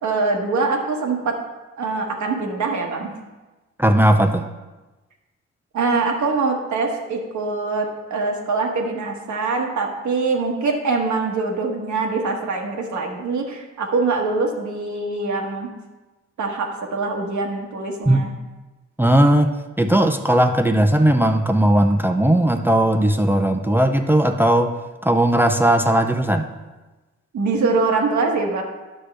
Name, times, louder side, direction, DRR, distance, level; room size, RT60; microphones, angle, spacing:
voice 1, 0.0-1.4 1.8-3.1 5.7-15.7 16.4-18.3 27.3-28.6, right 3 dB, 80° right, 2 dB, 1.2 m, -23 dB
voice 2, 3.8-4.4 18.1-18.2 19.0-24.7 25.0-26.5, right 1 dB, 5° right, 5 dB, 0.4 m, -17 dB
9.5 x 6.3 x 3.4 m, 1.1 s
cardioid pair, 105°, 29 cm